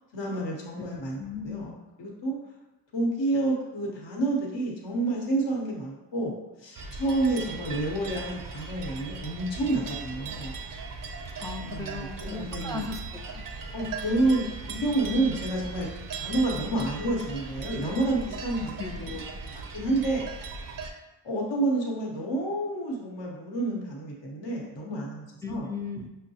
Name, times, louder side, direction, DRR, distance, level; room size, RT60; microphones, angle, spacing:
voice 1, 0.1-1.7 2.0-2.4 2.9-10.6 11.6-12.1 12.3-12.9 13.7-15.9 16.1-20.2 21.2-25.7, right 2 dB, 65° left, -1 dB, 0.9 m, -29 dB
voice 2, 1.2-1.7 11.4-13.4 18.8-19.2 25.4-26.1, left 4 dB, 10° left, 1 dB, 0.3 m, -37 dB
sound 1, 6.7-20.9, right 4 dB, 45° right, 0.5 m, -38 dB
5.4 x 2.1 x 2.7 m, 1.0 s
cardioid pair, 45°, 47 cm